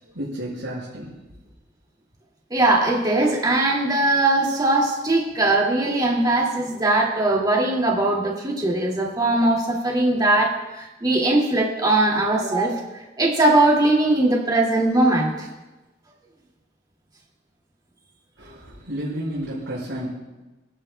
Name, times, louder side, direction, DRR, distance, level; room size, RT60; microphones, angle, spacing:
voice 1, 0.2-1.1 18.4-20.1, equal, 80° right, -8 dB, 5.3 m, -31 dB
voice 2, 2.5-12.8 13.2-15.5, right 2 dB, 20° right, -2 dB, 2.2 m, -20 dB
26.5 x 11.0 x 2.2 m, 1.1 s
head